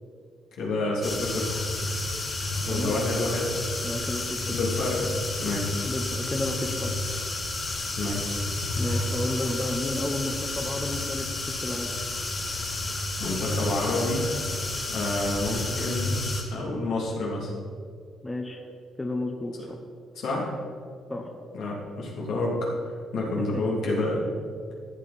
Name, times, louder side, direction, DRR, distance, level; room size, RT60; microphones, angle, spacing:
voice 1, 0.6-1.6 2.6-3.7 4.5-5.1 5.4-5.9 8.0-8.5 13.2-14.2 14.9-16.2 16.5-17.5 20.1-20.5 21.5-22.7 23.1-24.2, left 2 dB, 75° left, -3 dB, 3.1 m, -28 dB
sound 1, 1.0-16.4, left 2 dB, 35° left, 2.5 m, -31 dB
voice 2, 2.7-3.0 3.8-4.4 5.9-6.9 8.8-11.9 18.2-18.6 19.0-19.5 21.1-21.3, left 1 dB, 15° left, 3 dB, 1.1 m, -32 dB
14.0 x 8.8 x 4.3 m, 2.2 s
cardioid pair, 90°, 0 cm